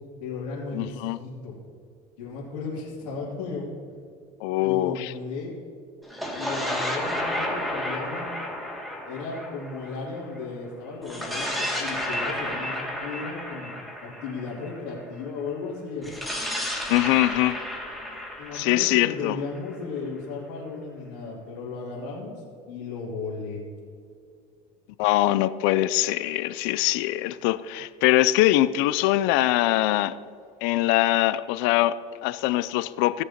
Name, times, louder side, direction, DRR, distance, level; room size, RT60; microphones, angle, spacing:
voice 1, 0.2-1.5 2.2-3.7 4.6-5.6 6.4-8.3 9.1-13.7 14.0-16.1 18.4-22.4 22.7-23.6, left 4 dB, 85° left, -9 dB, 2.7 m, -35 dB
voice 2, 0.7-1.2 4.4-5.1 16.9-17.6 18.5-19.4 25.0-30.2 30.6-33.2, left 16 dB, 70° left, 15 dB, 0.5 m, -23 dB
sound 1, 6.0-10.4 11.0-15.0 16.0-19.8, left 1 dB, ahead, 2.4 m, -32 dB
17.5 x 6.7 x 2.9 m, 2.3 s
supercardioid pair, 85°, 21 cm